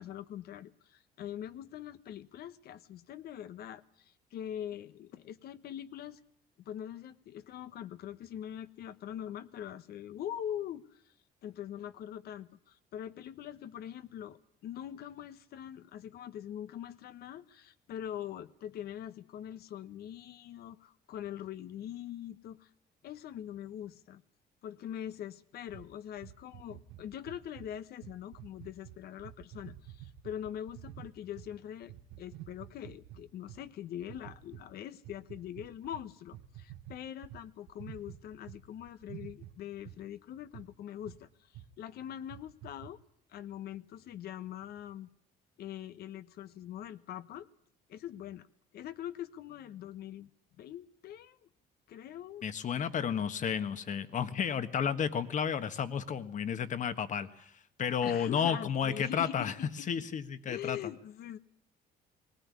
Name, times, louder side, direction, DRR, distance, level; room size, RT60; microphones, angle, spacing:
voice 1, 0.0-6.2 6.6-11.0 11.4-22.7 23.0-24.2 24.6-43.0 43.3-45.1 45.6-47.5 47.9-48.5 48.7-50.3 50.6-51.5 51.9-52.5 58.0-60.1 60.5-61.4, left 10 dB, 65° left, 13 dB, 1.2 m, -43 dB
sound 1, 25.7-31.5 31.8-33.6 34.0-34.7 35.0-38.6 38.9-40.0 40.5-40.7 41.1-41.3 41.5-41.7 42.1-42.9, right 13 dB, 85° right, 1.3 m, -49 dB
voice 2, 52.4-57.5 57.8-59.5 59.9-60.8, left 7 dB, 45° left, 11 dB, 1.6 m, -32 dB
19.5 x 19.0 x 9.8 m, 0.68 s
cardioid pair, 110°, 17 cm